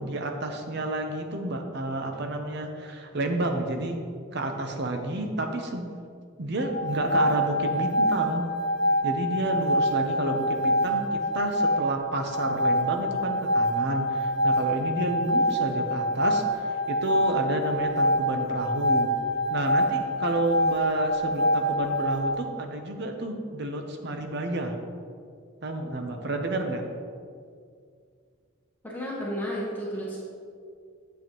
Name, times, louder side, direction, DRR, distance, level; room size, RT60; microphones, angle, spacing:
voice 1, 0.0-4.0 4.3-5.9 6.4-8.4 9.0-19.1 19.5-24.7 25.6-26.8, right 2 dB, 55° right, 4 dB, 0.8 m, -30 dB
sound 1, 6.6-22.4, equal, 50° left, 1.0 m, -26 dB
voice 2, 28.8-30.2, equal, 10° left, -6 dB, 1.2 m, -32 dB
8.5 x 7.1 x 3.0 m, 2.2 s
head